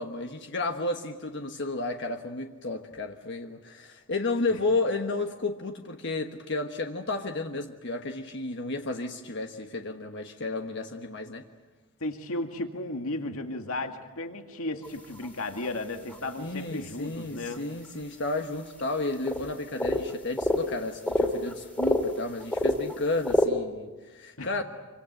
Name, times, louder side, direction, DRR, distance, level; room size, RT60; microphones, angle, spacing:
voice 1, 0.0-11.4 16.4-24.6, left 2 dB, 55° left, 4 dB, 1.3 m, -32 dB
voice 2, 12.0-17.6 24.4-24.5, left 2 dB, 75° left, 5 dB, 2.1 m, -34 dB
sound 1, 14.8-14.9 15.2-15.3 15.6-15.7 16.1-16.2 17.5-17.6 17.9-18.0 18.8-18.9 19.1-19.5 19.8-20.6 21.1-22.1 22.4-23.5, left 1 dB, 5° left, 2.5 m, -26 dB
26.5 x 25.0 x 7.9 m, 1.2 s
head